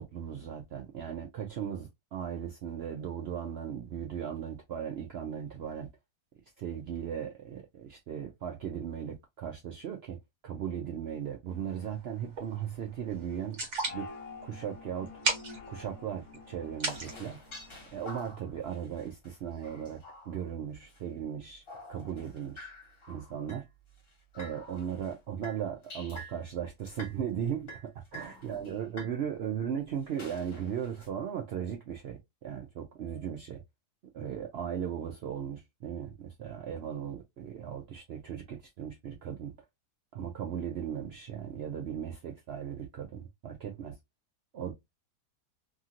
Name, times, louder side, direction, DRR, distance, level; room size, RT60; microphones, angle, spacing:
voice 1, 0.0-5.9 6.6-13.6 13.9-14.1 14.4-15.1 15.7-17.4 17.9-21.6 21.9-22.7 23.1-23.6 24.3-27.7 28.1-33.6 34.1-39.5 40.1-44.0 44.5-44.7, right 8 dB, 85° right, 0.5 m, -37 dB
sound 1, 11.5-18.1, right 3 dB, 50° right, 1.2 m, -38 dB
sound 2, 13.8-18.4, left 4 dB, 70° left, 1.0 m, -48 dB
sound 3, 16.8-21.2 21.5-25.2 25.4-26.4 26.8-27.2 27.6-29.1 30.0-31.1, left 1 dB, 40° left, 1.2 m, -49 dB
2.9 x 2.5 x 2.7 m
omnidirectional pair, 1.7 m